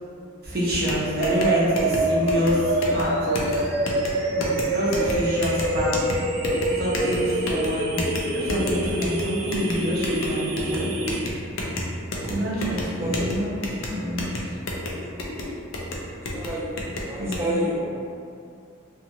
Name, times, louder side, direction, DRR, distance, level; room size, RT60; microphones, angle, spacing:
voice 1, 0.4-3.6 4.3-5.9 6.8-8.0 8.3-10.9 12.3-14.4 17.2-17.6, equal, 45° right, -7 dB, 0.7 m, -27 dB
sound 1, 0.7-17.4, left 1 dB, 60° left, 0.4 m, -31 dB
sound 2, 1.2-11.2, right 2 dB, 90° right, 0.4 m, -26 dB
voice 2, 12.1-14.1 14.8-15.4 16.1-18.0, equal, 15° right, -5 dB, 0.4 m, -32 dB
2.7 x 2.4 x 2.8 m, 2.4 s
head